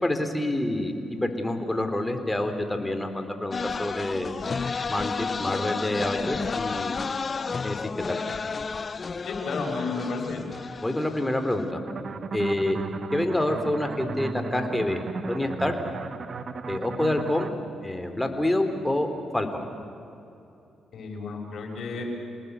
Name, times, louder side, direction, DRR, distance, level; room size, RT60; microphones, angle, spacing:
voice 1, 0.0-4.4 4.9-7.0 7.6-7.8 8.1-8.2 10.8-11.8 12.3-12.8 13.1-15.0 15.3-15.8 16.7-17.5 17.8-19.1 19.3-19.7, left 1 dB, 10° left, 7 dB, 3.6 m, -27 dB
sound 1, 3.5-11.7, left 5 dB, 40° left, 0.6 m, -32 dB
voice 2, 9.2-10.4 20.9-22.0, left 4 dB, 65° left, 1 dB, 6.4 m, -32 dB
sound 2, 11.9-17.5, right 4 dB, 55° right, 1.3 m, -35 dB
27.5 x 19.0 x 8.2 m, 2.8 s
supercardioid pair, 60°, 0 cm